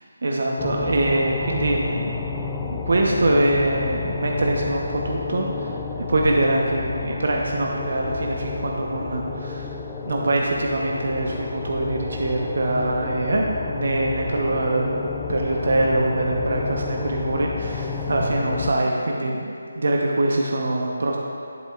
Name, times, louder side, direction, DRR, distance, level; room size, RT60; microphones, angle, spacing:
voice 1, 0.2-5.7 6.1-9.7 10.0-15.0 15.3-21.2, right 2 dB, 65° right, -1 dB, 0.8 m, -23 dB
sound 1, 0.6-18.7, left 5 dB, 15° left, 0.4 m, -31 dB
10.5 x 8.1 x 2.4 m, 2.6 s
figure-of-eight pair, 165°, 0 cm